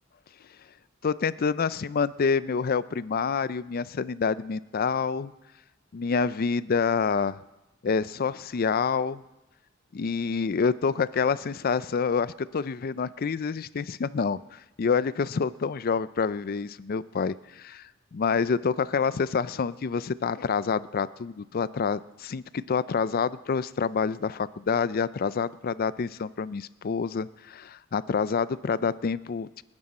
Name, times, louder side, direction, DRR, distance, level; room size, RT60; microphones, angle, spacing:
voice 1, 1.0-5.3 5.9-7.4 7.8-9.2 9.9-17.8 18.1-29.6, left 5 dB, 50° left, 17 dB, 0.4 m, -27 dB
29.0 x 9.8 x 4.2 m, 1.0 s
head